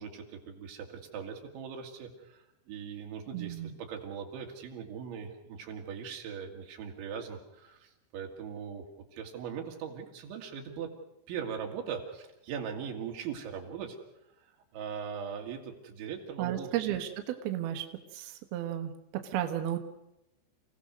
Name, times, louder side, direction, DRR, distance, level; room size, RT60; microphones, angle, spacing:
voice 1, 0.0-8.9 9.1-10.9 11.3-14.0 14.4-14.5 14.7-16.7, right 7 dB, 85° right, 2 dB, 4.5 m, -40 dB
voice 2, 3.3-3.8 16.4-17.9 18.1-19.8, right 12 dB, 65° right, 5 dB, 2.9 m, -33 dB
28.5 x 17.5 x 6.5 m, 0.87 s
omnidirectional pair, 5.2 m